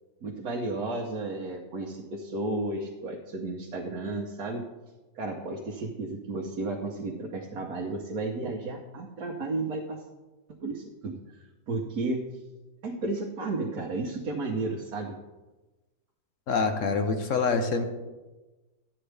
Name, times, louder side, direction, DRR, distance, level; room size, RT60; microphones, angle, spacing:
voice 1, 0.2-4.6 5.1-10.0 10.6-11.2 11.7-12.3 12.8-15.2, right 2 dB, 70° right, -1 dB, 1.4 m, -33 dB
voice 2, 16.5-17.8, left 4 dB, 60° left, 6 dB, 1.1 m, -26 dB
12.0 x 8.8 x 3.4 m, 1.1 s
omnidirectional pair, 1.7 m